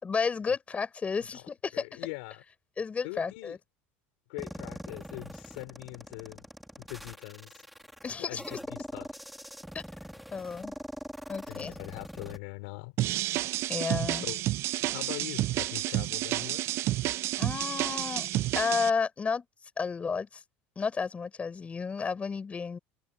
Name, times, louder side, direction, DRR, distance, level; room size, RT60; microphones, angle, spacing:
voice 1, 0.0-1.8 2.8-3.6 8.0-8.4 9.7-9.8 10.3-10.7 11.3-11.7 13.7-14.2 17.4-18.3 18.5-19.5 19.8-20.4 20.7-22.8, left 5 dB, 25° left, 4.8 m, -32 dB
voice 2, 1.3-2.4 3.0-3.6 4.3-6.4 6.8-7.7 8.2-9.1 11.5-13.0 14.2-14.5 14.9-16.7, left 27 dB, 80° left, 3.7 m, -42 dB
sound 1, 4.4-12.4, equal, ahead, 2.1 m, -43 dB
sound 2, 13.0-18.9, right 16 dB, 50° right, 0.3 m, -30 dB
supercardioid pair, 105°, 5 cm